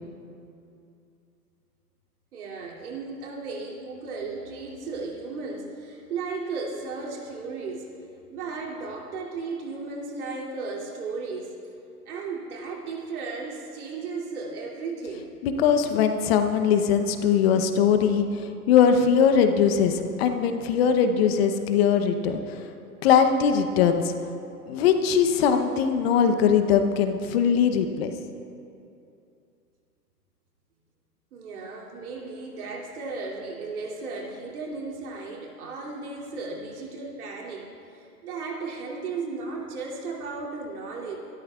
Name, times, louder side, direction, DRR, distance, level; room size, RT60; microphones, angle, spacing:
voice 1, 2.3-7.9 8.3-11.6 12.1-15.3 31.3-41.2, right 4 dB, 65° right, -3 dB, 2.9 m, -35 dB
voice 2, 15.4-22.7 23.0-24.1 24.7-28.1, left 7 dB, 40° left, 7 dB, 0.9 m, -21 dB
26.0 x 13.0 x 2.4 m, 2.6 s
hypercardioid pair, 120°, 48 cm